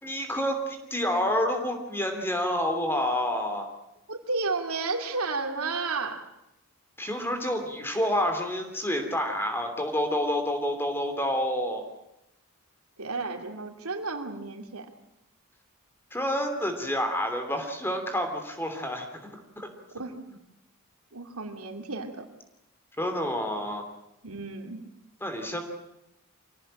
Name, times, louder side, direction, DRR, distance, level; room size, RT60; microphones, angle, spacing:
voice 1, 0.0-3.7 7.0-11.8 16.1-19.1 19.6-19.7 23.0-23.8 25.2-25.6, left 1 dB, 10° left, 5 dB, 3.0 m, -28 dB
voice 2, 4.1-6.2 13.0-14.9 20.0-20.2 21.1-22.3 24.2-24.8, right 3 dB, 80° right, 5 dB, 2.7 m, -32 dB
25.0 x 17.5 x 8.9 m, 0.89 s
head